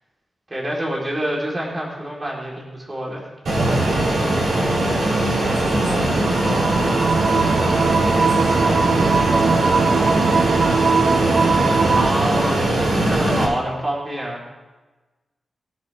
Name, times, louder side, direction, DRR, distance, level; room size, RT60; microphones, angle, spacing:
voice 1, 0.5-3.3 5.4-5.8 12.0-12.6 13.1-14.4, right 1 dB, 25° right, -4 dB, 4.0 m, -26 dB
Fixed-wing aircraft airplane, 3.5-13.5, right 1 dB, 85° right, 5.9 m, -20 dB
voice 2, 5.4-10.6, left 1 dB, 45° right, -3 dB, 3.8 m, -36 dB
sound 1, 6.2-12.1, right 5 dB, 65° right, 0.6 m, -20 dB
22.0 x 10.5 x 3.6 m, 1.2 s
wide cardioid pair, 125°, 0 cm